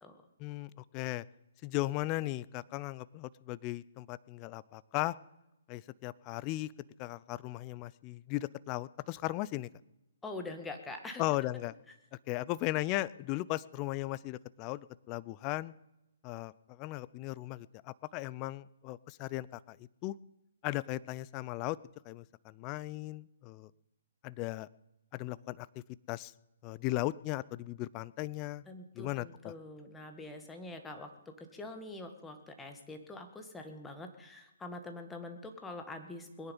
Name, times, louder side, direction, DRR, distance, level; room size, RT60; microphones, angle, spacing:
voice 1, 0.4-1.2 1.6-5.2 5.7-6.7 7.0-9.7 11.2-11.7 12.3-15.7 16.2-19.8 20.0-20.1 20.6-21.8 22.1-23.7 24.2-24.7 25.1-25.7 26.1-26.3 26.6-28.6 29.0-29.5, left 18 dB, 30° left, 20 dB, 0.4 m, -37 dB
voice 2, 10.2-11.2 28.7-36.5, left 2 dB, 10° left, 5 dB, 1.8 m, -45 dB
21.5 x 9.7 x 5.5 m, 0.91 s
hypercardioid pair, 140°, 0 cm